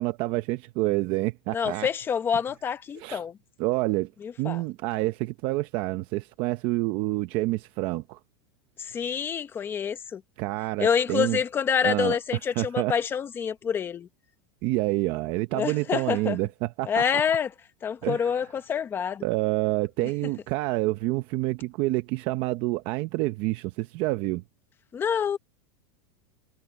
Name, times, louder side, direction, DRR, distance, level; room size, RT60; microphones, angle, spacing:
voice 1, 0.0-1.9 2.9-3.2 3.6-4.1 4.4-8.2 10.4-11.4 11.8-12.2 12.5-12.9 14.6-17.0 18.0-18.3 19.2-24.4, right 19 dB, 35° right, 0.7 m, -28 dB
voice 2, 1.5-3.4 4.2-4.6 8.8-10.2 10.8-14.1 15.5-16.4 16.8-17.5 17.8-19.2 24.9-25.4, left 7 dB, 15° left, 0.9 m, -27 dB
supercardioid pair, 175°, 14 cm